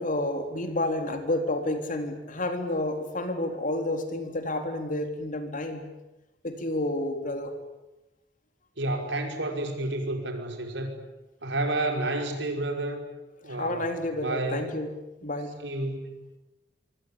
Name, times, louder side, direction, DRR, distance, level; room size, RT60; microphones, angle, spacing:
voice 1, 0.0-5.9 6.4-7.5 13.5-14.9 15.2-15.6, left 1 dB, 50° left, 6 dB, 3.8 m, -30 dB
voice 2, 8.8-11.0 11.4-13.0 13.4-14.7 15.6-16.1, right 2 dB, 80° right, 4 dB, 5.5 m, -30 dB
26.0 x 24.5 x 8.8 m, 1.0 s
head